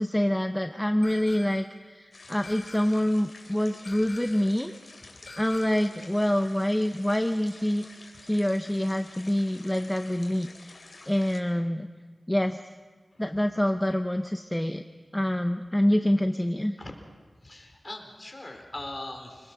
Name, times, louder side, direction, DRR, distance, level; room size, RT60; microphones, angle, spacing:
voice 1, 0.0-4.7 5.4-7.9 8.2-10.8 11.1-11.9 12.3-12.7 13.2-14.8 15.1-16.8, left 1 dB, 10° left, 7 dB, 0.7 m, -26 dB
sound 1, 1.0-1.8 2.4-3.2 3.8-4.6 5.3-6.0, left 3 dB, 70° left, 4.8 m, -47 dB
sound 2, 2.1-11.4, left 2 dB, 55° left, 3.5 m, -49 dB
voice 2, 17.4-19.5, left 2 dB, 30° left, 3 dB, 4.2 m, -40 dB
27.0 x 19.5 x 6.1 m, 1.4 s
wide cardioid pair, 80°, 0 cm